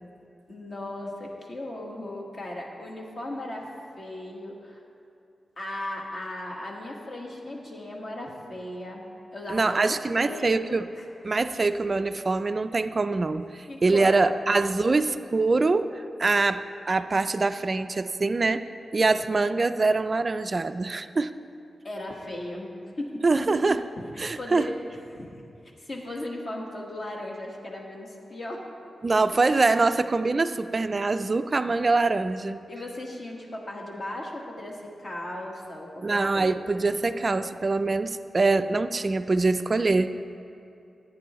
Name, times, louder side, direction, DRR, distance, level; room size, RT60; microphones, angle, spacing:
voice 1, 0.5-3.7 4.0-4.8 5.6-9.0 9.3-11.1 13.7-14.9 21.8-22.7 23.0-23.5 24.4-24.8 25.0-28.7 32.7-36.5, left 1 dB, 40° left, -1 dB, 1.4 m, -37 dB
voice 2, 9.5-10.9 11.2-18.7 18.9-21.3 23.2-23.8 24.2-24.7 29.0-32.6 36.0-40.1, right 3 dB, 30° right, 11 dB, 0.3 m, -24 dB
15.5 x 9.1 x 3.0 m, 2.6 s
wide cardioid pair, 155°, 0 cm